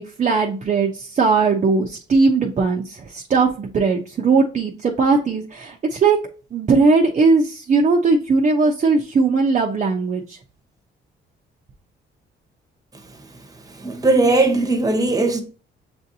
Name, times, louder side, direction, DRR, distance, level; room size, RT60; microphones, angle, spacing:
voice 1, 0.0-6.2 6.5-10.4, right 4 dB, 35° right, 0.6 m, -19 dB
voice 2, 13.8-15.4, right 2 dB, 20° right, 1.0 m, -18 dB
6.9 x 2.6 x 2.7 m
cardioid pair, 90°, 20 cm